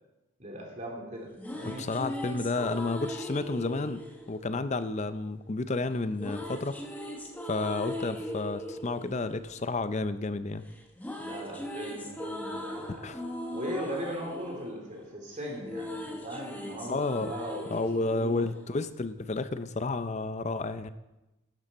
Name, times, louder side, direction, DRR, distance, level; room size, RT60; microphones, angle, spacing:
voice 1, 0.4-1.9 11.2-13.1 13.5-17.6 17.9-18.5, equal, 35° right, 0 dB, 2.8 m, -39 dB
sound 1, 1.1-5.3 6.2-10.4 10.7-19.2, left 1 dB, 10° left, 1.0 m, -40 dB
voice 2, 1.6-6.8 7.5-10.6 13.0-13.2 16.9-17.3 17.7-20.9, left 3 dB, 30° left, 12 dB, 0.5 m, -31 dB
11.5 x 11.5 x 4.2 m, 1.0 s
head